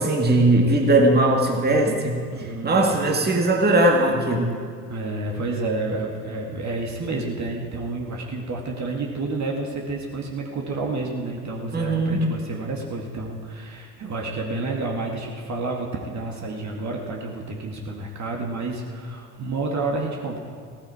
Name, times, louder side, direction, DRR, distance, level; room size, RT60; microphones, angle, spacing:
voice 1, 0.0-2.2 2.6-4.6 11.7-12.3, right 2 dB, 20° right, 1 dB, 2.2 m, -19 dB
voice 2, 2.3-3.0 4.9-20.4, right 3 dB, 40° right, 0 dB, 2.1 m, -30 dB
16.0 x 13.5 x 5.0 m, 2.2 s
figure-of-eight pair, 60°, 44 cm